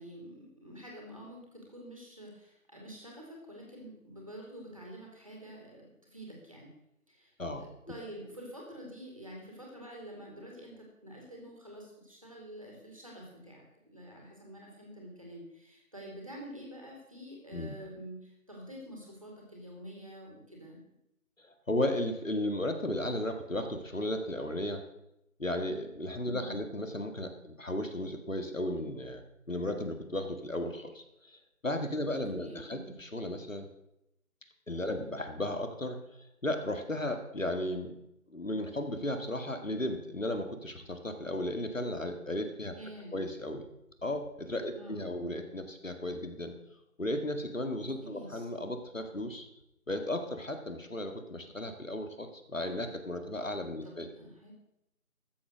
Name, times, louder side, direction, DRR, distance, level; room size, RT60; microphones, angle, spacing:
voice 1, 0.0-6.7 7.1-20.8 26.4-26.7 32.4-32.9 34.9-35.1 42.7-43.4 44.7-45.3 48.0-48.4 53.8-54.5, equal, 25° right, -1 dB, 2.4 m, -48 dB
voice 2, 7.4-7.7 17.5-17.8 21.4-24.9 25.4-33.7 34.7-36.0 36.4-38.0 38.3-42.7 43.1-43.7 44.0-46.6 47.0-49.5 49.9-54.1, left 1 dB, 65° left, 7 dB, 2.0 m, -35 dB
14.0 x 7.7 x 6.4 m, 0.83 s
figure-of-eight pair, 170°, 42 cm